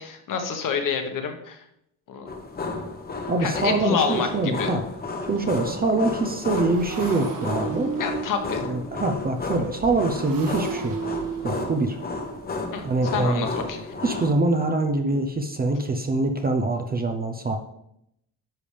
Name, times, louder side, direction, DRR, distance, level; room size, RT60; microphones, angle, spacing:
voice 1, 0.0-1.6 2.1-2.2 3.4-4.7 8.0-8.6 12.7-13.9, left 6 dB, 50° left, 5 dB, 1.2 m, -28 dB
sound 1, 2.3-14.3, left 3 dB, 20° left, 0.9 m, -32 dB
voice 2, 3.3-4.8 5.3-7.9 8.7-11.0 11.4-12.0 12.8-13.5 14.0-17.6, right 2 dB, 20° right, 5 dB, 0.6 m, -24 dB
Motorcycle, 4.9-15.3, right 5 dB, 50° right, 1.5 m, -37 dB
10.5 x 7.0 x 3.3 m, 0.77 s
cardioid pair, 165°, 41 cm